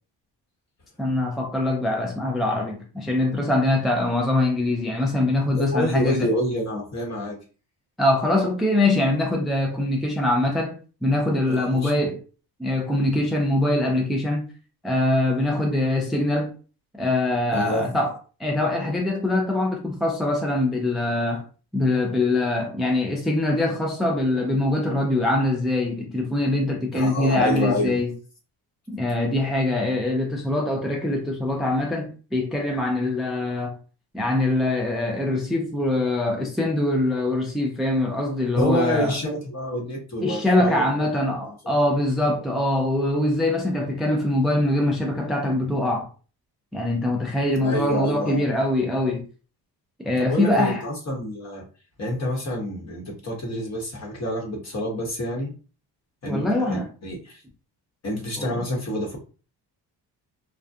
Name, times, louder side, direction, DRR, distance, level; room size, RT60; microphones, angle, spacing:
voice 1, 1.0-6.3 8.0-12.2 12.6-14.5 14.8-16.5 17.0-18.1 18.4-21.4 21.7-28.1 28.9-33.8 34.1-39.2 40.2-46.1 46.7-49.2 50.0-50.8 56.2-56.9 58.4-58.6, left 1 dB, ahead, 0.4 m, -23 dB
voice 2, 5.5-7.4 11.5-12.1 17.5-17.9 26.9-27.9 38.5-40.8 41.4-41.8 47.6-48.5 50.2-51.6 52.0-55.5 56.2-57.4 58.0-59.2, equal, 35° left, 1.1 m, -28 dB
2.3 x 2.2 x 2.6 m
cardioid pair, 80°, 45 cm